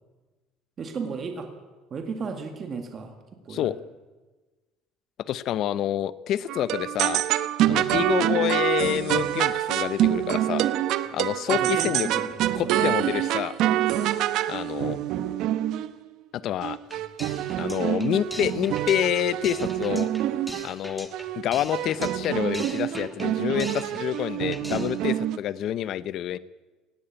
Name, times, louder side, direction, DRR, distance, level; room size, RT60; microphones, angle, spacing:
voice 1, 0.8-1.5 1.9-3.2 3.5-3.7 7.6-7.8 11.5-12.7, right 5 dB, 30° right, 5 dB, 1.9 m, -34 dB
voice 2, 5.3-7.2 7.7-10.7 11.1-12.1 12.5-13.5 14.5-15.0 16.3-16.8 17.6-20.1 20.6-21.1 21.3-26.4, left 11 dB, 45° left, 17 dB, 0.6 m, -27 dB
sound 1, 6.5-15.9 16.6-20.7 21.1-21.4 21.7-25.4, right 13 dB, 55° right, 0.9 m, -26 dB
sound 2, 16.8-24.3 24.5-25.0, equal, ahead, 1.3 m, -41 dB
19.0 x 16.0 x 8.9 m, 1.3 s
cardioid pair, 175°, 0 cm